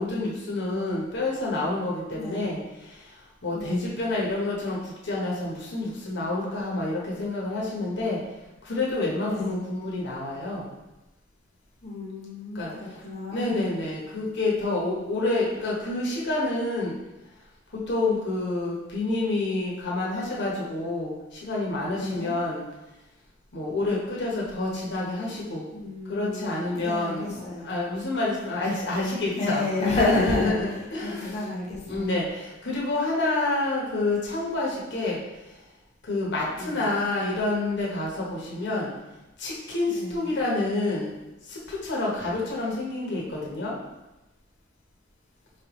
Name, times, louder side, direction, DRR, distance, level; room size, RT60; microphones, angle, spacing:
voice 1, 0.0-2.6 3.4-4.8 5.0-8.2 8.6-10.7 12.5-12.7 13.3-17.0 17.7-21.1 21.4-22.6 23.5-25.6 26.1-31.4 31.9-35.2 36.1-38.9 39.4-41.1 41.5-43.7, left 2 dB, 60° left, -4 dB, 1.1 m, -28 dB
voice 2, 2.1-2.5 3.5-3.9 9.2-9.6 11.8-13.6 21.9-22.4 25.2-25.4 25.7-27.7 29.3-32.2 36.5-36.9 39.9-40.2, left 2 dB, 35° left, -3 dB, 0.9 m, -31 dB
4.5 x 3.3 x 3.0 m, 1.0 s
head